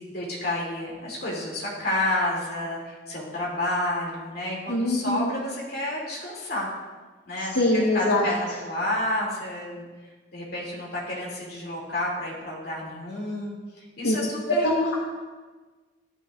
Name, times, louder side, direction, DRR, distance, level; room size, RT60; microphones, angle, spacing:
voice 1, 0.0-6.7 7.3-9.9 10.3-13.6 14.0-14.7, left 1 dB, 55° left, -4 dB, 2.7 m, -30 dB
voice 2, 4.7-5.3 7.5-8.2 14.0-14.2 14.6-15.0, left 1 dB, 85° left, -4 dB, 1.4 m, -23 dB
11.5 x 10.5 x 2.5 m, 1.3 s
head